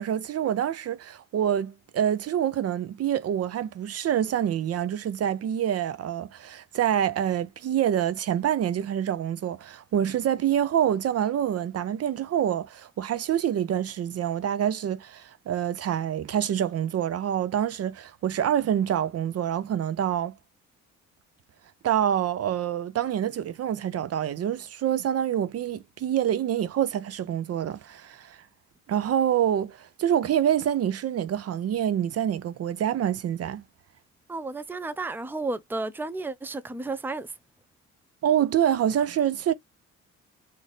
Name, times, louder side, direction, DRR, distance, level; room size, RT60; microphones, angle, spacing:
voice 1, 0.0-20.3 21.8-28.4 28.9-33.6 38.2-39.5, right 10 dB, 55° right, 0.6 m, -26 dB
voice 2, 34.3-37.3, right 3 dB, 5° right, 0.5 m, -32 dB
3.9 x 2.6 x 3.4 m
cardioid pair, 90°, 30 cm